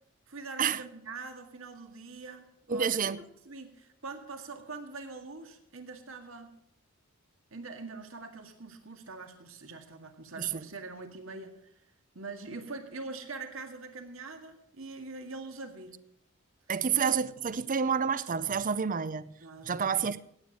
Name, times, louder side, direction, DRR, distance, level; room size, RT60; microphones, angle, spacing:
voice 1, 0.3-3.2 3.4-6.5 7.5-11.7 12.1-16.0 19.4-20.0, right 3 dB, 70° right, 2.0 m, -43 dB
voice 2, 2.7-3.2 10.4-10.6 16.7-19.3 19.6-20.2, right 6 dB, 40° right, 0.6 m, -29 dB
16.0 x 9.1 x 6.4 m
head